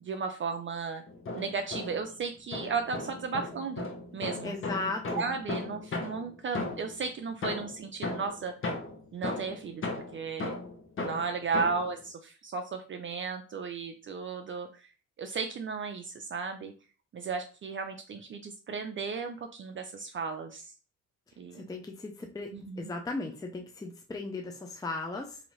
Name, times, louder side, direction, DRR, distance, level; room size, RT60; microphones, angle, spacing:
voice 1, 0.0-1.0 1.3-4.6 5.1-8.5 9.1-10.6 11.0-14.9 15.2-16.7 17.1-20.7 21.4-21.7 22.5-22.9, right 5 dB, 40° right, 5 dB, 0.5 m, -35 dB
sound 1, 1.1-2.1 2.5-7.0 7.4-11.9, left 2 dB, 45° left, 1.0 m, -36 dB
voice 2, 4.4-5.2 21.5-25.4, left 3 dB, 10° left, 2 dB, 0.5 m, -37 dB
3.9 x 2.7 x 3.1 m, 0.37 s
cardioid pair, 90°, 30 cm